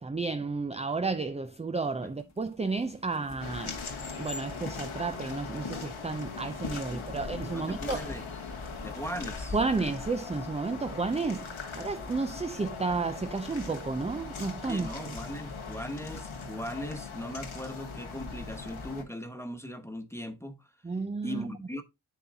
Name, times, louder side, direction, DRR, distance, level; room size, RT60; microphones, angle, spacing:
voice 1, 0.0-3.8 4.2-8.1 9.5-15.2 20.8-21.6, right 4 dB, 15° right, 0.3 m, -32 dB
sound 1, 1.8-10.4, left 3 dB, 35° left, 1.0 m, -46 dB
sound 2, 3.4-19.0, left 4 dB, 85° left, 1.4 m, -40 dB
voice 2, 6.9-7.2 7.5-8.3 8.8-9.6 14.7-20.7 21.2-21.8, equal, 5° left, 1.0 m, -39 dB
10.0 x 3.9 x 2.7 m
wide cardioid pair, 55°, 47 cm